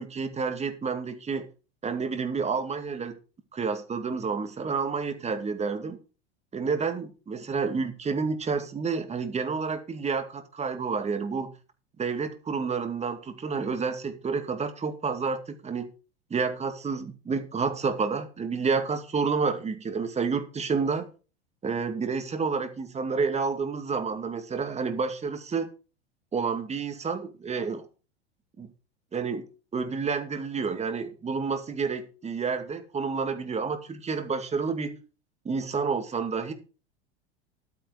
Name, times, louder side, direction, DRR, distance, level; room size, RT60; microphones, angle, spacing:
voice 1, 0.0-1.5 1.8-3.2 3.5-6.0 6.5-11.5 12.0-15.9 16.3-21.1 21.6-25.7 26.3-27.8 28.6-28.7 29.1-29.5 29.7-35.0 35.4-36.5, right 5 dB, 20° right, 2.4 m, -29 dB
12.0 x 9.0 x 4.9 m
hypercardioid pair, 90°, 32 cm